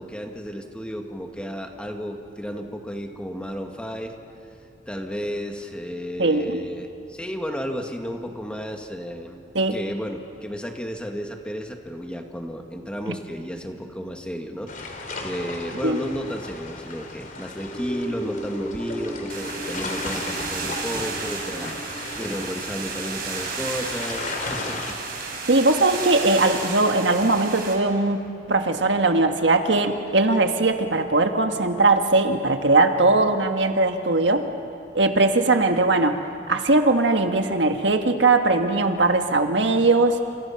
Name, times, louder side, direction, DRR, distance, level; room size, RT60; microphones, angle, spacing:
voice 1, 0.0-4.2 4.9-9.4 9.7-21.8 22.2-25.0, equal, 5° left, 3 dB, 1.9 m, -33 dB
voice 2, 6.2-6.6 9.6-9.8 15.8-16.0 25.5-28.2 28.5-34.5 35.0-40.2, right 2 dB, 75° right, 5 dB, 1.7 m, -20 dB
sound 1, 14.7-24.9, left 3 dB, 50° left, 3.4 m, -36 dB
sound 2, 17.6-26.0 26.3-26.4, right 1 dB, 20° left, 6.5 m, -37 dB
sound 3, 19.3-27.7, right 4 dB, 55° right, 5.0 m, -33 dB
30.0 x 28.0 x 5.9 m, 2.5 s
head